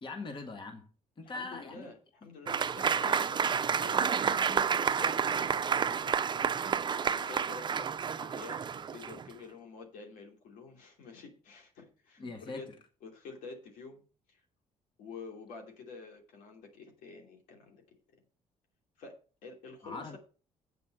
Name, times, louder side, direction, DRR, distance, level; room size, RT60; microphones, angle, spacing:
voice 1, 0.0-0.9 1.2-1.9 2.9-3.3 12.2-12.6 19.8-20.2, left 3 dB, 35° left, 1.7 m, -42 dB
voice 2, 1.2-3.4 3.7-6.5 7.1-12.7 13.0-14.0 14.3-14.4 15.0-17.8 19.0-19.2 19.4-20.2, left 4 dB, 85° left, 2.8 m, -49 dB
Applause / Crowd, 2.5-9.3, right 7 dB, 35° right, 0.5 m, -30 dB
8.0 x 5.4 x 7.6 m
cardioid pair, 105°, 14 cm